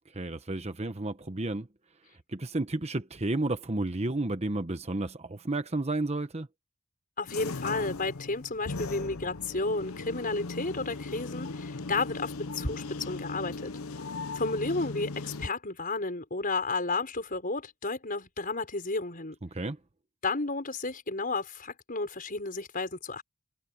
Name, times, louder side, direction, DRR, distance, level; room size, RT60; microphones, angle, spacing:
voice 1, 0.1-1.7 2.3-6.5 19.4-19.8, right 2 dB, 30° right, 1.1 m, -32 dB
voice 2, 7.2-13.7 14.3-19.4 20.2-23.2, left 3 dB, 40° left, 5.6 m, -32 dB
sound 1, 7.3-15.5, left 3 dB, 90° left, 0.9 m, -38 dB
head